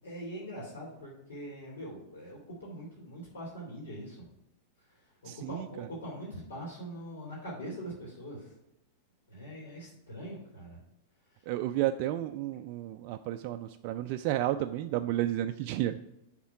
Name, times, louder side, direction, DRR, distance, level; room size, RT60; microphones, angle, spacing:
voice 1, 0.0-4.2 4.9-8.5 9.3-10.8 11.3-11.5, equal, 70° left, -5 dB, 2.8 m, -43 dB
voice 2, 5.3-5.7 11.5-16.0, right 13 dB, 50° right, 7 dB, 0.3 m, -32 dB
7.2 x 3.7 x 5.7 m, 0.84 s
figure-of-eight pair, 95°, 0 cm